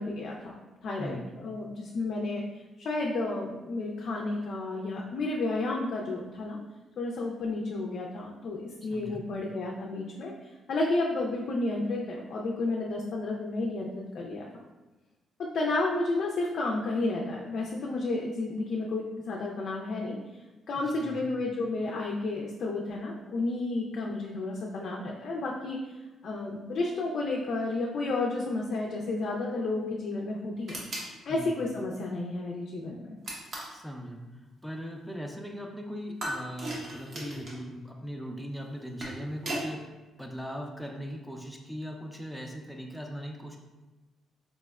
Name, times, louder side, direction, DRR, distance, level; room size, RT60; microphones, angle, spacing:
voice 1, 0.0-2.4 2.8-6.6 7.0-14.5 15.4-26.0 26.2-30.8 31.2-33.1, left 2 dB, 60° left, -2 dB, 0.3 m, -32 dB
voice 2, 8.9-9.2 20.9-21.1 31.3-31.5 33.7-34.2 34.6-39.8 40.2-43.6, equal, ahead, 1 dB, 0.4 m, -39 dB
sound 1, 30.7-31.1 33.2-33.8 36.2-37.6 38.7-39.7, right 1 dB, 55° right, 0.9 m, -36 dB
4.1 x 2.0 x 2.3 m, 1.1 s
cardioid pair, 90°, 0 cm